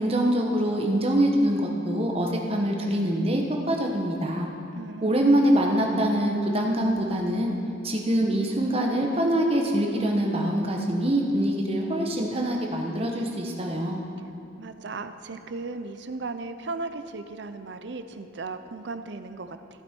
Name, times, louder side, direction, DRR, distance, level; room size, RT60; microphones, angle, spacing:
voice 1, 0.0-4.5 5.0-7.5 7.8-14.0, right 1 dB, 30° right, 1 dB, 1.1 m, -24 dB
voice 2, 4.7-5.3 14.6-19.6, right 3 dB, 60° right, 10 dB, 0.5 m, -36 dB
15.0 x 8.7 x 4.5 m, 2.8 s
head